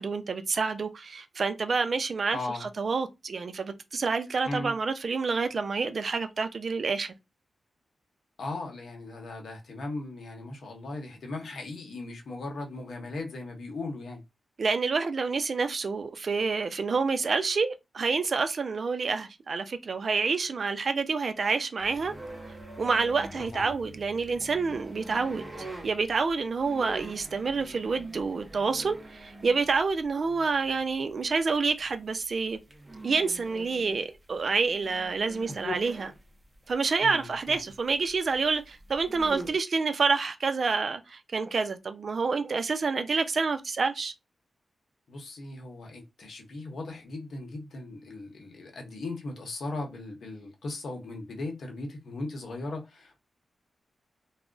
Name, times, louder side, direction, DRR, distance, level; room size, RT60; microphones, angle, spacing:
voice 1, 0.0-7.1 14.6-22.1 22.8-25.4 25.8-32.6 33.0-36.1 36.7-44.1, right 4 dB, 50° right, 0.4 m, -28 dB
voice 2, 2.3-2.7 4.4-4.7 8.4-14.2 23.4-23.7 35.6-35.7 37.0-37.6 45.1-53.2, left 2 dB, 70° left, 0.9 m, -38 dB
sound 1, 21.8-39.5, right 2 dB, 20° right, 0.7 m, -45 dB
2.4 x 2.0 x 3.7 m
wide cardioid pair, 135°, 0 cm